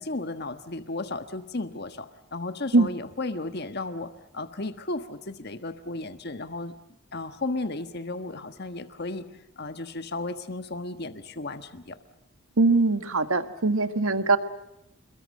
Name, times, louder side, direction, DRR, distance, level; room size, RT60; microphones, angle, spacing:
voice 1, 0.0-6.7 7.1-9.3 9.6-12.0, left 2 dB, 50° left, 9 dB, 1.4 m, -34 dB
voice 2, 12.6-14.4, right 3 dB, 75° right, 9 dB, 1.7 m, -21 dB
28.5 x 22.0 x 7.7 m, 0.86 s
head